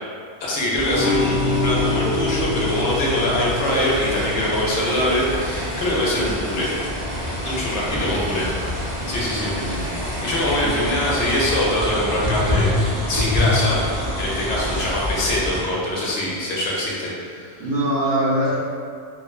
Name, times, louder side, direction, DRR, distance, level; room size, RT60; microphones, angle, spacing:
voice 1, 0.4-6.7 7.4-8.5 9.1-12.7 13.1-13.8 14.1-17.6, left 1 dB, 85° left, -5 dB, 0.9 m, -23 dB
sound 1, 0.7-15.6, left 1 dB, 40° right, 1.0 m, -27 dB
sound 2, 0.9-5.7, left 3 dB, 40° left, 0.5 m, -26 dB
sound 3, 3.6-11.6, right 1 dB, 90° right, 0.9 m, -36 dB
voice 2, 7.9-8.3 9.2-10.0 10.6-10.9 17.6-18.6, right 1 dB, 60° right, -7 dB, 0.7 m, -25 dB
2.8 x 2.1 x 2.3 m, 2.2 s
omnidirectional pair, 1.1 m